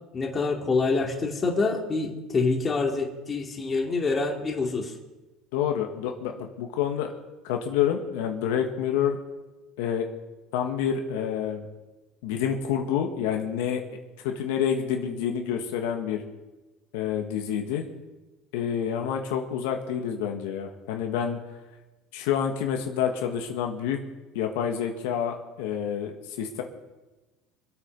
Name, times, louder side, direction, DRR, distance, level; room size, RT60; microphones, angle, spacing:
voice 1, 0.1-4.9, left 3 dB, 25° left, 1 dB, 2.4 m, -26 dB
voice 2, 5.5-7.1 7.4-9.2 9.8-10.1 10.5-11.6 12.2-13.8 14.2-16.2 16.9-17.8 18.5-21.4 22.1-24.0 24.3-26.6, left 8 dB, 90° left, 3 dB, 1.7 m, -28 dB
24.5 x 8.6 x 5.4 m, 1.1 s
cardioid pair, 130°, 0 cm